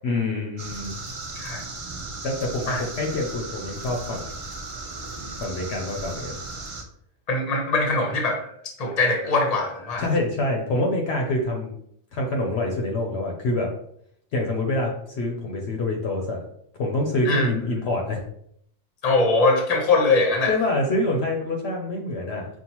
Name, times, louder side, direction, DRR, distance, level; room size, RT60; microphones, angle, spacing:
voice 1, 0.0-1.0 2.2-4.3 5.4-6.4 10.0-11.8 12.1-13.7 14.3-16.4 16.8-18.2 20.5-22.5, left 2 dB, 65° left, 1 dB, 0.9 m, -26 dB
sound 1, 0.6-6.8, right 3 dB, 50° right, 0.4 m, -36 dB
voice 2, 7.3-8.5 8.8-10.0 17.2-17.5 19.0-20.5, left 3 dB, 35° left, 2 dB, 0.9 m, -22 dB
5.4 x 2.4 x 2.9 m, 0.70 s
omnidirectional pair, 1.3 m